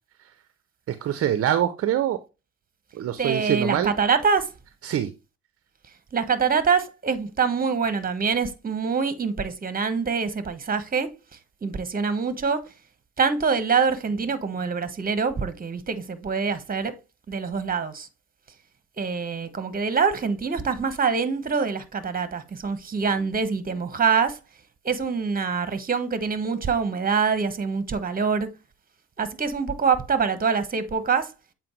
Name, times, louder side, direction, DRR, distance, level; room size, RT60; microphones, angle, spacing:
voice 1, 0.9-2.2 2.9-3.9 4.8-5.1, right 11 dB, 45° right, 0.6 m, -24 dB
voice 2, 3.2-4.5 6.1-11.1 11.6-12.6 13.2-16.9 17.3-18.1 19.0-24.4 24.8-28.5 29.2-31.3, right 5 dB, 25° right, 1.2 m, -25 dB
7.6 x 4.4 x 3.1 m
hypercardioid pair, 55°, 32 cm